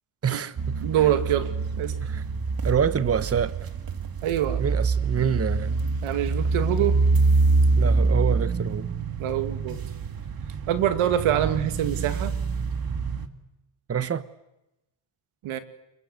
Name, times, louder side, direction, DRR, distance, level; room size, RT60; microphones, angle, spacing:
voice 1, 0.2-1.1 2.0-2.2 2.6-3.5 4.6-5.8 7.8-8.9 13.9-14.3, right 7 dB, 30° right, 14 dB, 1.1 m, -27 dB
sound 1, 0.6-13.3, right 4 dB, 45° right, 2.5 m, -25 dB
voice 2, 0.8-1.5 1.8-2.0 4.2-4.6 6.0-7.0 9.2-9.8 10.7-12.3 15.4-15.6, right 11 dB, 85° right, 9 dB, 2.4 m, -25 dB
29.0 x 22.5 x 8.0 m, 0.92 s
cardioid pair, 90°, 48 cm